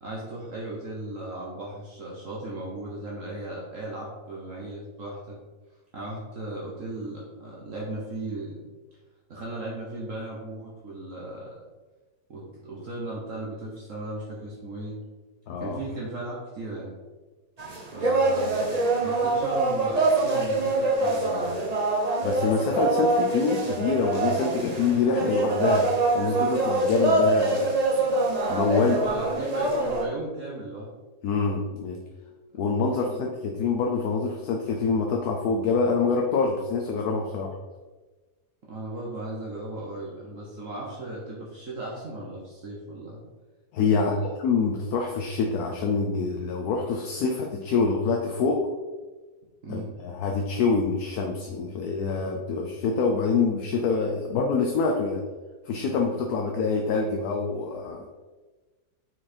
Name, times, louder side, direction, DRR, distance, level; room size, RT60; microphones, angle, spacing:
voice 1, 0.0-5.4 5.9-8.6 9.3-11.6 12.3-15.0 15.6-16.9 17.9-21.7 28.7-30.9 32.9-33.2 38.7-43.2 43.9-44.3 49.6-49.9, right 2 dB, 55° right, -4 dB, 1.4 m, -36 dB
voice 2, 15.5-15.8 22.2-25.9 26.1-27.8 28.5-29.0 31.2-32.0 32.6-37.5 43.7-48.6 49.7-55.2 55.7-58.1, left 4 dB, 75° left, 1 dB, 1.2 m, -26 dB
sound 1, 17.6-30.0, right 2 dB, 30° right, 0.8 m, -25 dB
5.8 x 4.8 x 4.3 m, 1.3 s
omnidirectional pair, 1.7 m